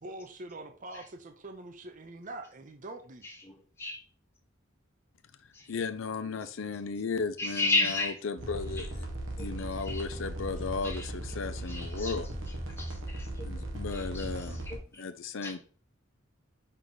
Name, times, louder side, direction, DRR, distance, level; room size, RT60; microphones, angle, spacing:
voice 1, 0.0-3.2, right 2 dB, 40° right, 0.8 m, -44 dB
voice 2, 3.2-4.0 5.5-5.7 7.4-8.2 8.7-8.9 9.4-10.0 10.8-11.1 11.6-12.2 12.7-13.6 13.9-15.0 15.4-15.6, left 2 dB, 15° left, 1.2 m, -34 dB
voice 3, 5.7-9.1 9.4-12.3 13.4-14.6 15.0-15.6, left 4 dB, 70° left, 0.5 m, -35 dB
sound 1, 8.4-14.8, right 1 dB, 90° right, 1.6 m, -37 dB
5.7 x 4.6 x 4.0 m
head